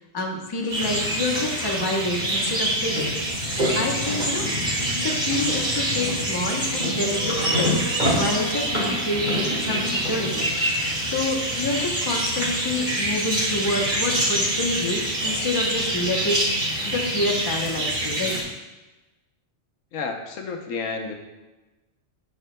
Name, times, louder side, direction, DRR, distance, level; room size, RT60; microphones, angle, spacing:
voice 1, 0.1-3.2 3.5-7.7 8.1-18.3, left 2 dB, 20° left, 0 dB, 0.8 m, -28 dB
sound 1, 0.7-18.4, right 1 dB, 35° right, 1.8 m, -25 dB
voice 2, 19.9-21.1, left 4 dB, 85° left, 4 dB, 1.2 m, -30 dB
12.5 x 4.5 x 2.2 m, 1.1 s
omnidirectional pair, 1.3 m